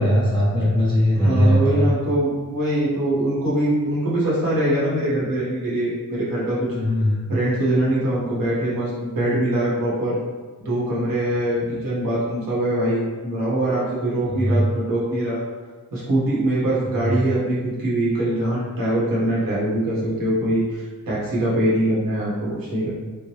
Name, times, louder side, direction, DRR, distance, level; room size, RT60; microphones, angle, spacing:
voice 1, 0.0-1.9 6.6-7.3 14.3-14.6 16.6-16.7 17.0-17.1, equal, 15° left, -8 dB, 0.8 m, -19 dB
voice 2, 1.2-6.7 7.3-10.2 10.6-15.4 15.9-22.9, right 1 dB, 75° right, -7 dB, 1.4 m, -23 dB
3.7 x 2.2 x 3.1 m, 1.4 s
cardioid pair, 95°, 34 cm